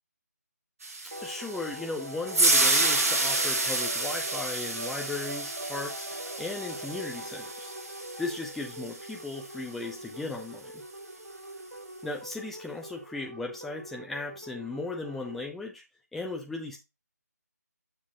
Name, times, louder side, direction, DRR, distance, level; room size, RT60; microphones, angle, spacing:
sound 1, 0.8-9.1, right 2 dB, 55° right, 1.7 m, -29 dB
sound 2, 1.1-15.5, right 1 dB, 90° right, 1.2 m, -42 dB
voice 1, 1.2-7.7 8.2-10.7 12.0-15.8 16.1-16.8, left 3 dB, ahead, 0 dB, 0.6 m, -37 dB
7.1 x 6.8 x 2.9 m, 0.25 s
figure-of-eight pair, 150°, 9 cm